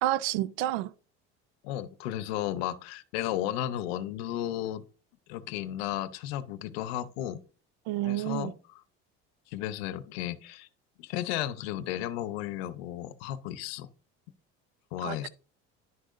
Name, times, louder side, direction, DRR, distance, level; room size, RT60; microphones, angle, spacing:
voice 1, 0.0-0.9 7.9-8.5 15.0-15.3, right 14 dB, 85° right, 0.5 m, -29 dB
voice 2, 1.6-4.8 5.3-7.4 8.0-8.5 9.5-10.7 11.0-13.9 14.9-15.3, left 12 dB, 90° left, 0.7 m, -34 dB
11.0 x 6.3 x 2.5 m
supercardioid pair, 90°, 30 cm